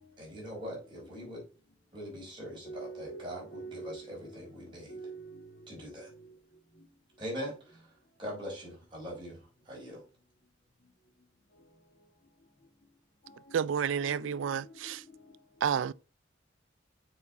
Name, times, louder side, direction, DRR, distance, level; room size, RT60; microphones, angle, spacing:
voice 1, 0.2-1.4 1.9-5.0 5.7-6.1 7.2-7.9 8.2-10.0, equal, 25° right, 4.2 m, -42 dB
voice 2, 2.6-5.7 6.0-6.3 6.8-6.9 13.2-15.4, right 3 dB, 55° left, 1.7 m, -47 dB
voice 3, 13.5-15.0 15.6-15.9, right 7 dB, 90° right, 0.3 m, -30 dB
6.9 x 4.9 x 4.0 m
head